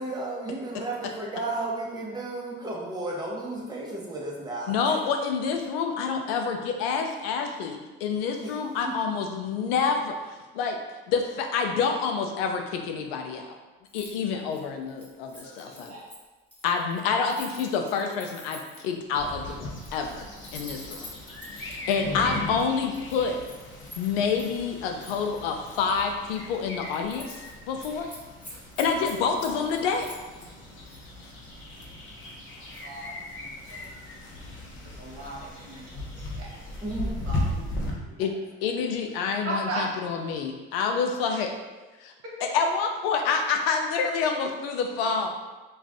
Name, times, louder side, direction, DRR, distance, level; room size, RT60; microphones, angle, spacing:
voice 1, 0.0-4.9 8.4-8.5 8.8-8.9 36.8-38.0, right 2 dB, 15° right, -3 dB, 0.8 m, -34 dB
voice 2, 4.7-10.8 11.1-13.6 13.9-15.9 16.6-20.2 20.5-21.1 21.5-23.4 24.0-28.1 28.8-30.2 38.2-38.3 38.6-41.5 42.0-42.1 42.4-45.3, left 5 dB, 80° left, 4 dB, 0.4 m, -28 dB
Keys jangling, 13.9-14.1 14.4-18.9 19.6-22.0 22.6-24.6 25.0-26.1 26.4-26.6 26.9-27.5 27.8-30.5 30.9-31.1, left 1 dB, 5° left, 1.0 m, -47 dB
voice 3, 15.4-16.1 32.5-33.9 34.8-35.8 36.2-36.6 37.2-38.2 39.4-39.9 42.2-42.4, right 2 dB, 50° right, -4 dB, 1.1 m, -38 dB
sound 1, 19.1-37.9, left 1 dB, 40° left, 0.8 m, -37 dB
2.4 x 2.3 x 3.5 m, 1.2 s
hypercardioid pair, 70°, 29 cm